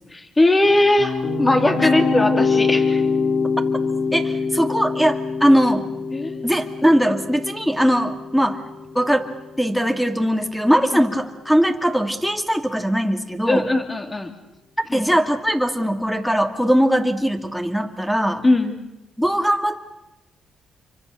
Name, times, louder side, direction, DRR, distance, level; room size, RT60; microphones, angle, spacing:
voice 1, 0.1-3.0 6.1-6.4 13.5-14.3 14.9-15.1 18.4-18.8, left 2 dB, 20° left, 6 dB, 3.1 m, -19 dB
sound 1, 0.6-9.7, left 4 dB, 70° left, 3.3 m, -24 dB
voice 2, 4.1-5.9 6.4-8.6 8.9-13.7 14.9-18.4 19.2-19.8, equal, ahead, 7 dB, 2.3 m, -20 dB
27.5 x 24.5 x 6.7 m, 0.96 s
cardioid pair, 90°, 0 cm